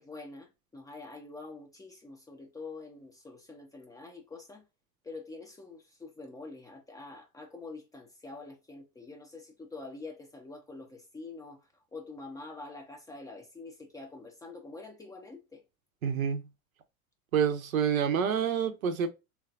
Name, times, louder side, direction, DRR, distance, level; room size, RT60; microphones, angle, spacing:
voice 1, 0.0-4.6 5.0-15.6, left 3 dB, 10° left, 0.4 m, -46 dB
voice 2, 16.0-16.4 17.3-19.1, right 7 dB, 75° right, 0.6 m, -27 dB
3.0 x 2.3 x 2.3 m
figure-of-eight pair, 75°, 42 cm